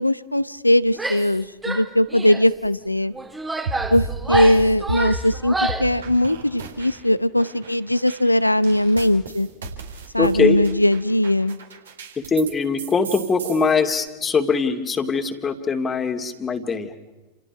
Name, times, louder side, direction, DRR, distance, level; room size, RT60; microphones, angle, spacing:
voice 1, 0.0-3.1 3.9-9.5 10.1-11.6, left 1 dB, 85° left, 16 dB, 0.8 m, -19 dB
Female speech woman speaking / Yell, 0.9-1.4 1.6-2.5 3.1-6.0, right 2 dB, 10° right, 1.8 m, -28 dB
sound 1, 3.7-5.3 5.7-7.1 7.4-12.5 12.8-13.9, right 3 dB, 65° right, 4.2 m, -33 dB
voice 2, 10.2-10.6 12.3-16.9, left 4 dB, 20° left, 7 dB, 2.4 m, -22 dB
29.5 x 28.5 x 6.0 m, 1.2 s
figure-of-eight pair, 90°, 0 cm